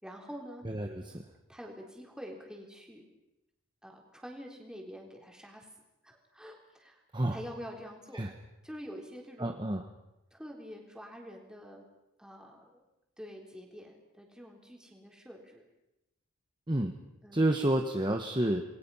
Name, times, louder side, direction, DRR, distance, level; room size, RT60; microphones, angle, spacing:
voice 1, 0.0-0.6 1.5-3.1 3.8-5.7 6.0-7.0 7.3-8.3 8.6-9.6 10.3-11.8 12.2-12.8 13.2-15.7 17.2-17.5, equal, 5° right, 0 dB, 3.7 m, -46 dB
voice 2, 0.6-1.3 7.1-7.4 8.1-8.3 9.4-9.8 16.7-16.9 17.3-18.6, right 1 dB, 20° right, 4 dB, 1.2 m, -29 dB
28.0 x 21.5 x 5.7 m, 0.92 s
head